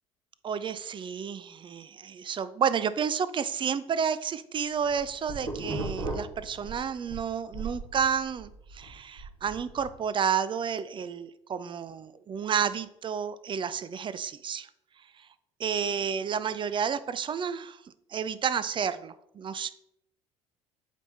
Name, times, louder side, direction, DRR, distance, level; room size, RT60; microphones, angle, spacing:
voice 1, 0.4-14.7 15.6-17.8 18.1-19.7, right 7 dB, 30° right, 14 dB, 0.5 m, -31 dB
sound 1, 4.7-7.2 7.5-9.9, right 2 dB, 60° right, 2.7 m, -37 dB
8.2 x 3.4 x 4.1 m, 0.78 s
figure-of-eight pair, 55°, 16 cm